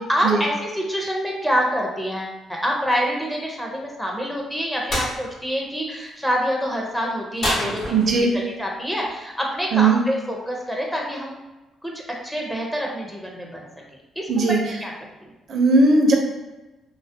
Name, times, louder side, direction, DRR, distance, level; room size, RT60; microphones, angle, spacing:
voice 1, 0.1-11.4 11.8-13.6 14.2-14.9, equal, 5° left, -2 dB, 0.5 m, -26 dB
sound 1, 4.9-5.1 7.4-8.4, equal, 50° left, 0.9 m, -26 dB
voice 2, 7.9-8.3 9.7-10.0 14.3-14.6 15.5-16.1, right 3 dB, 55° right, 1 dB, 0.4 m, -17 dB
2.3 x 2.0 x 2.6 m, 1.1 s
cardioid pair, 90°, 0 cm